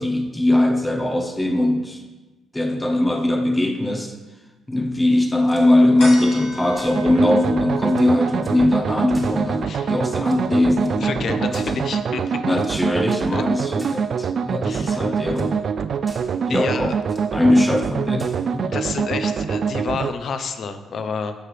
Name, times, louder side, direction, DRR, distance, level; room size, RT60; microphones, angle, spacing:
voice 1, 0.0-2.0 2.5-4.1 4.7-11.8 12.4-15.6 16.5-16.9 17.3-18.7, left 1 dB, 10° left, 5 dB, 0.7 m, -20 dB
sound 1, 5.3-6.1 6.7-7.1 7.5-7.6 7.8-8.6 9.1-9.8 10.2-11.0 11.5-12.1 12.5-13.3 13.8-14.2 14.7-15.0 15.3-15.5 16.0-16.5 17.0-17.8 18.2-18.6, right 1 dB, 10° right, 1.5 m, -45 dB
sound 2, 6.0-12.8 13.2-13.3, left 1 dB, 90° left, 2.6 m, -40 dB
sound 3, 6.9-20.1, right 6 dB, 55° right, 0.3 m, -25 dB
voice 2, 11.0-12.2 13.3-13.4 14.6-15.1 16.5-16.9 18.7-21.3, left 5 dB, 60° left, 9 dB, 0.7 m, -29 dB
13.5 x 4.8 x 3.3 m, 1.2 s
cardioid pair, 90°, 0 cm